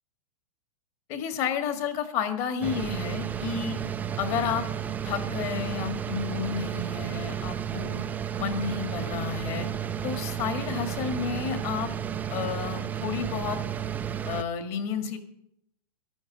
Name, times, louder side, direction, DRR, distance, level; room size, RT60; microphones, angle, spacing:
voice 1, 1.1-3.8 4.2-4.7 5.0-8.0 8.4-9.7 10.0-11.9 12.3-13.6 14.3-15.2, left 7 dB, 35° left, 8 dB, 1.9 m, -31 dB
sound 1, 2.6-14.4, right 9 dB, 10° right, 0.4 m, -32 dB
13.5 x 11.5 x 5.2 m, 0.73 s
hypercardioid pair, 155°, 19 cm